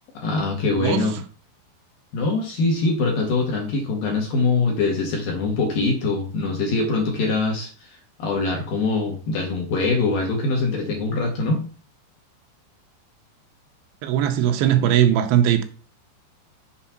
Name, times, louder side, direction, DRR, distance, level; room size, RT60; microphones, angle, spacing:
voice 1, 0.1-1.1 2.1-7.9 8.2-11.6, left 3 dB, 65° left, 2.4 m, -23 dB
voice 2, 0.8-1.1 14.0-15.6, right 10 dB, 85° right, 2.9 m, -19 dB
7.3 x 3.7 x 5.7 m
omnidirectional pair, 5.2 m